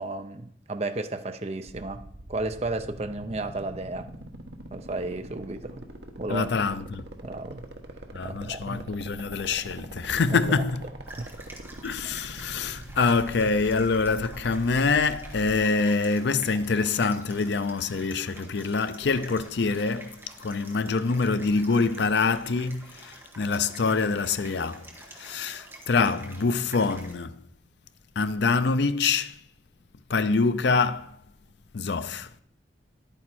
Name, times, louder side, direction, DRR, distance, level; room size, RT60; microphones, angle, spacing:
voice 1, 0.0-2.0 2.3-4.1 4.7-5.9 6.2-6.5 7.2-7.6 8.2-9.0 10.3-10.4 11.1-11.3, right 2 dB, 35° right, 0.6 m, -33 dB
sound 1, 1.7-15.6, right 1 dB, 65° right, 1.2 m, -42 dB
voice 2, 6.3-7.0 8.1-10.9 11.8-24.9 25.1-27.4 28.2-29.4 30.1-31.2 31.7-32.3, left 4 dB, 70° left, 0.5 m, -25 dB
sound 2, 11.0-27.1, right 1 dB, 15° right, 1.4 m, -48 dB
11.0 x 8.9 x 4.3 m
head